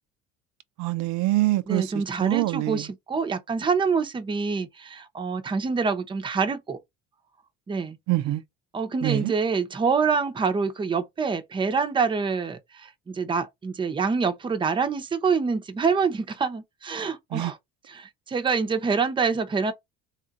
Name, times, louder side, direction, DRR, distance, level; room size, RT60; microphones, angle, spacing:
voice 1, 0.8-2.9 8.1-8.4 9.0-9.3 17.3-17.5, right 17 dB, 75° right, 0.6 m, -25 dB
voice 2, 1.7-6.8 7.7-8.0 8.7-17.6 17.9-19.7, right 5 dB, 15° right, 0.6 m, -26 dB
3.6 x 2.4 x 4.0 m
cardioid pair, 140°, 29 cm